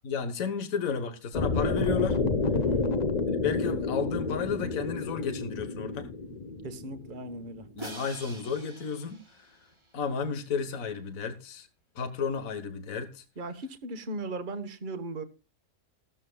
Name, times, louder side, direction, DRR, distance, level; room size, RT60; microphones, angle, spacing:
voice 1, 0.0-2.2 3.3-6.1 7.7-9.6 9.9-11.7 11.9-13.2, left 6 dB, 65° left, 1.7 m, -33 dB
sound 1, 1.3-7.4, left 3 dB, 30° left, 1.0 m, -29 dB
voice 2, 2.6-2.9 6.6-7.6 13.4-15.2, right 2 dB, 35° right, 1.4 m, -37 dB
Crash cymbal, 7.8-10.0, right 2 dB, 20° right, 1.5 m, -45 dB
16.0 x 13.5 x 2.3 m
omnidirectional pair, 1.5 m